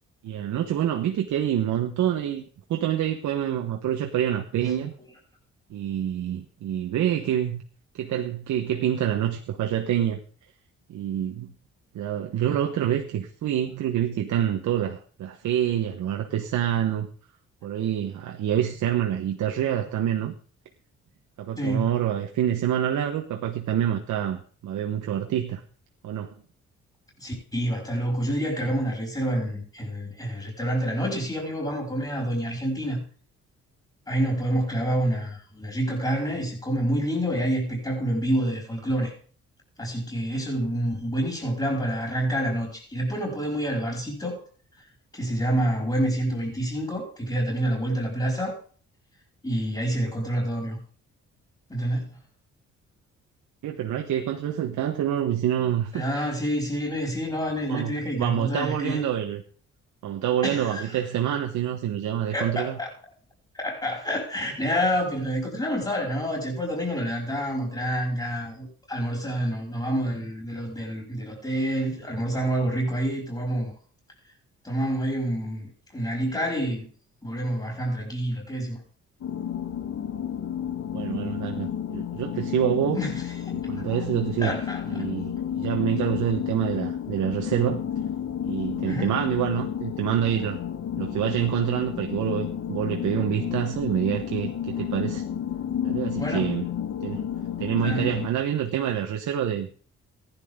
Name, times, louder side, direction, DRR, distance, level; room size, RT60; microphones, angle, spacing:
voice 1, 0.2-2.4 2.7-4.9 5.7-7.6 7.9-10.2 10.9-11.5 11.9-17.1 17.6-20.3 21.4-25.6 26.0-26.3 28.4-28.7 53.6-56.3 57.7-59.4 60.0-62.8 80.9-83.0 83.5-84.5 84.9-87.8 88.5-90.6 91.0-95.2 95.8-96.7 97.0-97.2 97.6-99.7, right 10 dB, 85° right, 1.3 m, -27 dB
voice 2, 21.6-21.9 27.2-33.0 34.1-39.1 39.8-44.4 45.1-48.6 49.4-50.8 51.7-52.1 55.9-59.0 60.4-61.0 62.3-62.9 63.5-73.7 74.6-76.9 77.2-78.8 82.9-84.0 84.4-85.1 88.9-89.2 96.2-96.5 97.8-98.1, equal, 15° left, 5.8 m, -28 dB
sound 1, 79.2-98.3, left 9 dB, 65° left, 1.6 m, -31 dB
15.0 x 11.0 x 3.7 m
cardioid pair, 85°, 29 cm